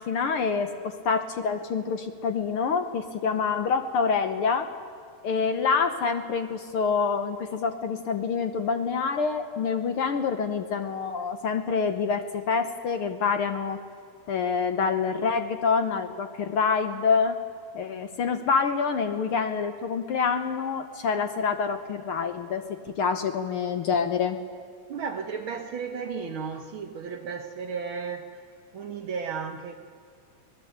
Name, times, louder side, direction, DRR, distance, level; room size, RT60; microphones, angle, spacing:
voice 1, 0.0-4.7 5.2-13.8 14.3-17.4 17.7-22.6 22.9-24.4, left 5 dB, 65° left, 8 dB, 1.4 m, -26 dB
voice 2, 24.9-28.4 28.7-29.7, right 6 dB, 60° right, 5 dB, 1.4 m, -34 dB
25.0 x 18.5 x 8.0 m, 2.1 s
omnidirectional pair, 3.4 m